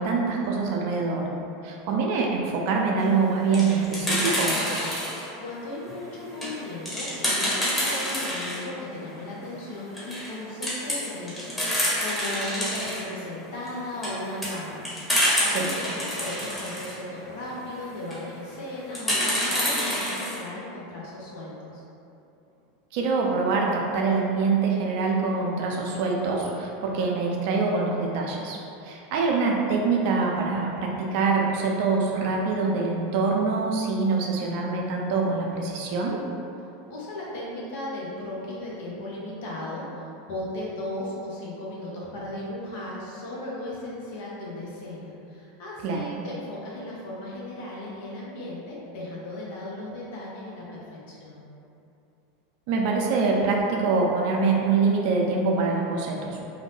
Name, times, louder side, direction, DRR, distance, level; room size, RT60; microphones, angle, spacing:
voice 1, 0.0-1.3 1.6-4.6 15.5-15.7 22.9-28.6 28.8-36.2 45.8-46.0 52.7-56.4, right 4 dB, 60° right, -1 dB, 0.4 m, -24 dB
sound 1, 3.3-5.3 5.8-8.6 9.0-9.1 9.4-9.5 9.8-10.3 10.6-13.0 13.7-16.9 17.9-18.2 18.9-20.4, equal, 10° left, 1.0 m, -27 dB
voice 2, 5.0-15.1 15.4-21.8 36.9-51.5, left 1 dB, 65° left, -5 dB, 0.7 m, -36 dB
2.6 x 2.0 x 3.2 m, 2.7 s
hypercardioid pair, 90°, 0 cm